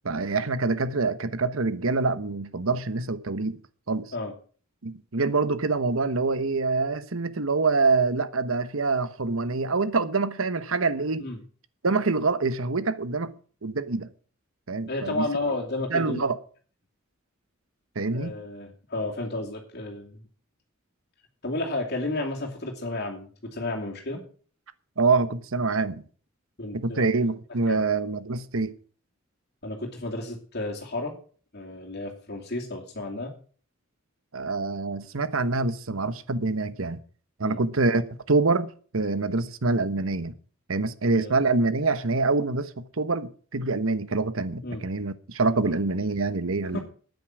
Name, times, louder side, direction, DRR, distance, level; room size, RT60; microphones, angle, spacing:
voice 1, 0.0-3.6 3.9-4.1 4.8-11.3 11.8-13.3 13.6-14.1 14.7-15.3 15.9-16.4 17.9-18.3 25.0-26.0 26.7-28.8 34.3-37.0 37.4-40.3 40.7-46.8, right 3 dB, 75° right, 1.1 m, -25 dB
voice 2, 14.9-16.2 18.1-20.2 21.4-24.2 26.6-27.1 27.7-27.8 29.6-31.1 31.5-33.3 37.4-37.6 41.1-41.4 44.6-44.8 46.7-46.8, left 2 dB, 50° left, 2.7 m, -32 dB
13.5 x 9.5 x 6.3 m
head